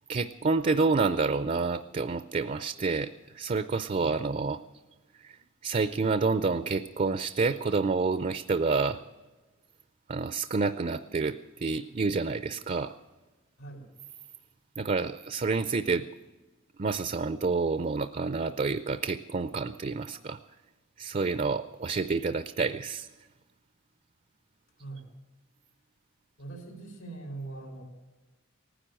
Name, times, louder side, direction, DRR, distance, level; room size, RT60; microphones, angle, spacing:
voice 1, 0.1-4.6 5.2-5.4 5.6-9.0 10.1-12.9 14.8-16.1 16.8-20.4 21.0-23.1, right 4 dB, 35° right, 13 dB, 0.5 m, -28 dB
voice 2, 3.9-4.3 13.6-13.9 24.8-25.0 26.4-27.8, right 3 dB, 80° left, -1 dB, 3.8 m, -42 dB
18.5 x 10.0 x 7.6 m, 1.2 s
head